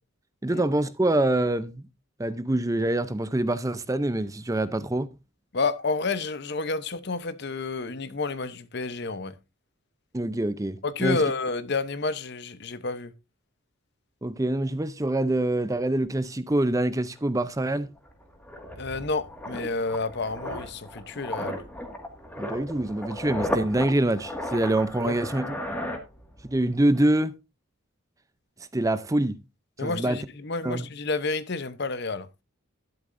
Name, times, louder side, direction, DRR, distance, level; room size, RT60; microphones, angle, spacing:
voice 1, 0.4-1.8 2.2-5.1 10.1-11.2 14.2-17.9 22.4-25.6 26.4-27.3 28.7-29.4 29.8-30.2 30.6-30.9, right 1 dB, 15° right, 0.5 m, -25 dB
voice 2, 5.5-9.3 10.8-13.1 18.8-21.6 24.9-25.2 29.8-32.3, left 3 dB, 50° left, 0.8 m, -30 dB
sound 1, 17.2-17.3 17.6-26.6 26.9-27.2, left 1 dB, 10° left, 1.9 m, -35 dB
12.0 x 10.5 x 2.6 m
head